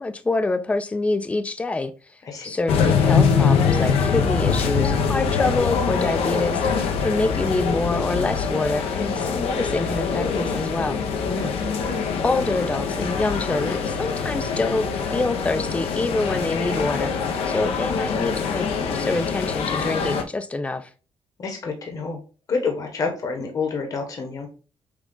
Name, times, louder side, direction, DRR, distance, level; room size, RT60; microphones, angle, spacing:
voice 1, 0.0-1.9 2.4-11.0 12.2-20.9, left 2 dB, 15° left, 0.4 m, -26 dB
sound 1, 2.7-20.2, left 6 dB, 90° left, 0.7 m, -23 dB
voice 2, 11.3-11.6 21.4-22.2 22.5-24.5, left 4 dB, 35° left, 1.0 m, -28 dB
6.0 x 2.3 x 3.7 m
cardioid pair, 155°, 10 cm